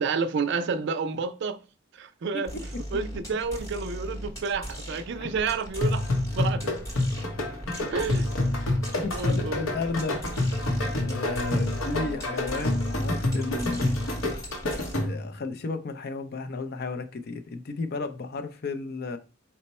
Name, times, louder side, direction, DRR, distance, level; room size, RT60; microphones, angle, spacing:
voice 1, 0.0-1.6 1.9-2.5 2.9-6.0 6.4-6.8 7.9-8.3 9.1-9.6, right 5 dB, 55° right, 0.4 m, -29 dB
sound 1, 2.5-14.9, equal, 15° left, 0.8 m, -38 dB
sound 2, 5.8-15.3, left 2 dB, 80° left, 0.9 m, -28 dB
voice 2, 9.0-10.5 10.7-14.0 15.0-19.2, left 3 dB, 50° left, 0.4 m, -33 dB
4.3 x 2.1 x 4.1 m
head